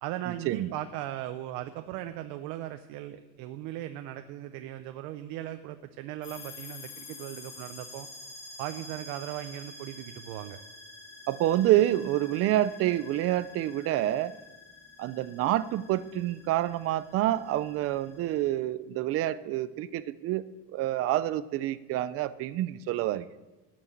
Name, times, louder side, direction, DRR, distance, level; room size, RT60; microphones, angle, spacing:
voice 1, 0.0-8.1 8.6-10.6, right 13 dB, 75° right, 8 dB, 0.8 m, -38 dB
sound 1, 6.2-18.5, left 3 dB, 55° left, 5.2 m, -48 dB
voice 2, 11.3-14.3 15.0-20.5 20.7-23.2, right 14 dB, 45° right, 16 dB, 0.4 m, -27 dB
18.0 x 6.1 x 7.3 m, 1.1 s
cardioid pair, 170°, 34 cm